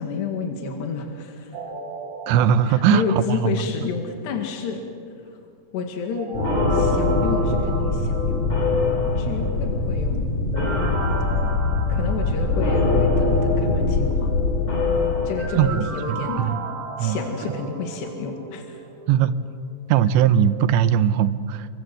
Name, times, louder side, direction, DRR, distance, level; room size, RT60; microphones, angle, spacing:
voice 1, 0.0-1.6 2.7-4.8 5.7-6.4 6.7-8.5 9.2-10.3 11.9-14.3 15.3-16.7 17.0-18.8 20.0-20.1, left 5 dB, 75° left, 3 dB, 4.1 m, -30 dB
sound 1, 1.5-3.8 6.1-9.1 10.5-13.3 15.4-19.8 20.2-20.3, right 5 dB, 65° right, 4.6 m, -36 dB
voice 2, 2.3-3.0 3.3-3.6 15.5-16.6 17.0-17.2 19.1-19.3 19.9-21.7, right 9 dB, 85° right, 12 dB, 3.1 m, -20 dB
sound 2, 6.3-15.8, left 3 dB, 40° left, 5.1 m, -22 dB
29.5 x 23.5 x 7.7 m, 2.3 s
omnidirectional pair, 5.1 m